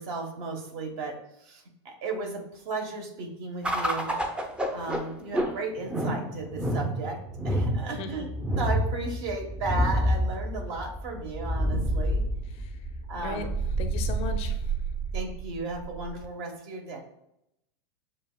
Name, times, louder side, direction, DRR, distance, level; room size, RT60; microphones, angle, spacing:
voice 1, 0.0-4.2 4.7-8.3 8.6-12.2 12.5-12.6 13.1-13.5 15.1-17.0, right 3 dB, 55° right, 2 dB, 1.2 m, -35 dB
sound 1, 3.6-16.3, right 1 dB, 5° right, 0.6 m, -29 dB
voice 2, 13.8-14.6, left 5 dB, 40° left, 6 dB, 0.5 m, -36 dB
7.2 x 2.4 x 2.2 m, 0.82 s
hypercardioid pair, 105°, 15 cm